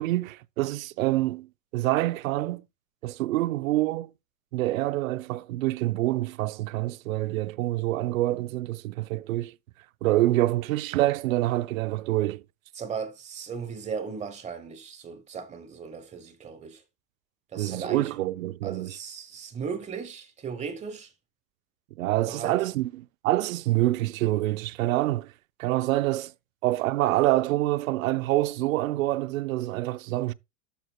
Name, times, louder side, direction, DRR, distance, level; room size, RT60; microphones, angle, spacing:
voice 1, 0.0-2.6 3.0-4.1 4.5-9.5 10.0-12.4 17.6-19.0 22.0-25.3 25.6-26.3 26.6-30.3, right 16 dB, 80° right, 0.6 m, -26 dB
voice 2, 12.8-16.8 17.5-18.2 18.6-21.1 22.2-22.5, right 6 dB, 15° right, 1.1 m, -36 dB
12.5 x 4.4 x 2.3 m
supercardioid pair, 145°, 40 cm